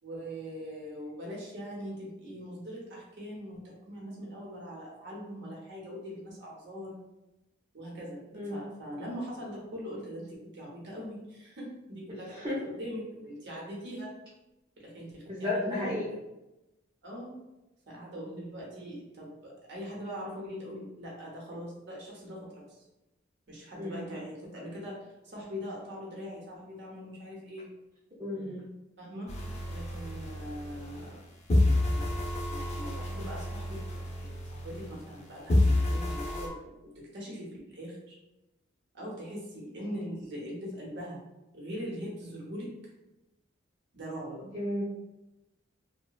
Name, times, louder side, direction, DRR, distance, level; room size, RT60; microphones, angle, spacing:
voice 1, 0.0-7.0 7.7-14.1 14.8-16.0 17.0-17.3 17.9-22.8 23.5-27.7 29.0-29.4 29.6-31.2 31.9-38.2 38.9-41.2 41.5-42.7 43.9-44.5, equal, 60° right, -4 dB, 0.8 m, -41 dB
voice 2, 8.3-8.7 12.3-12.5 15.3-16.0 23.8-23.9 28.2-28.6 44.5-44.8, left 1 dB, 25° right, -7 dB, 0.5 m, -33 dB
sound 1, 29.3-31.2 31.5-35.2 35.5-36.5, left 1 dB, 35° left, 0.5 m, -29 dB
2.8 x 2.2 x 2.3 m, 0.98 s
head